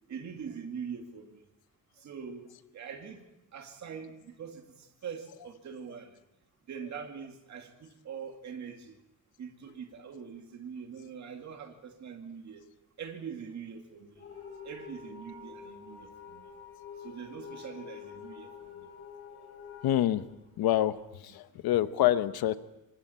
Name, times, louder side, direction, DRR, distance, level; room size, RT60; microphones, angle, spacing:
voice 1, 0.1-1.4 2.0-3.2 3.5-6.1 6.7-9.0 9.4-12.7 13.0-14.2 14.6-16.5 17.0-18.9, right 6 dB, 50° right, 2.4 m, -43 dB
sound 1, 14.1-21.1, left 6 dB, 40° left, 7.6 m, -47 dB
voice 2, 19.8-20.2 20.6-21.0 21.2-22.6, left 13 dB, 85° left, 1.0 m, -26 dB
26.5 x 24.0 x 4.4 m
cardioid pair, 165°, 36 cm